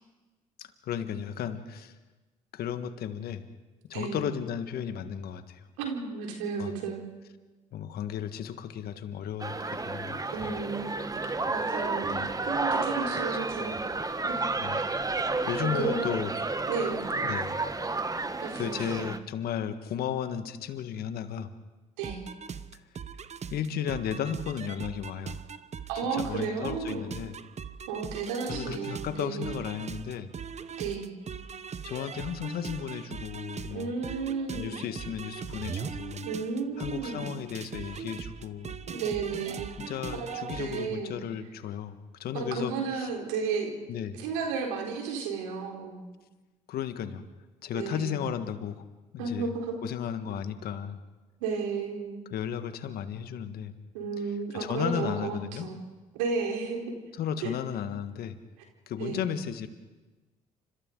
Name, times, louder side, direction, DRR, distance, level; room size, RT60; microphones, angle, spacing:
voice 1, 0.6-1.9 2.5-3.4 3.9-5.7 6.6-6.7 7.7-10.5 12.1-12.3 14.6-14.8 15.5-16.3 17.2-17.6 18.5-21.5 22.7-22.8 23.5-25.4 26.1-27.4 28.5-30.3 31.8-33.9 34.5-36.3 36.8-38.8 39.8-43.1 43.9-44.2 46.7-47.2 47.6-48.8 49.1-49.5 49.8-51.0 52.3-53.7 54.2-54.3 54.5-55.7 57.2-58.4 58.9-59.7, left 8 dB, 65° left, 9 dB, 1.6 m, -34 dB
voice 2, 5.8-7.0 10.3-11.1 11.5-13.8 14.3-14.5 14.8-14.9 15.7-16.1 16.7-17.0 18.4-19.1 22.0-22.2 25.9-27.1 27.9-29.5 30.8-31.1 33.7-34.8 36.3-37.3 38.9-39.7 40.2-41.2 42.3-43.7 44.2-46.0 47.7-48.2 49.2-49.7 51.4-52.2 53.9-55.8 56.1-56.9 57.4-57.5 59.0-59.3, right 5 dB, 85° right, 1 dB, 4.0 m, -33 dB
sound 1, 9.4-19.2, right 3 dB, 20° right, 1.4 m, -31 dB
sound 2, 22.0-40.9, right 6 dB, 40° right, 1.1 m, -40 dB
29.5 x 26.0 x 3.9 m, 1.2 s
hypercardioid pair, 55°, 17 cm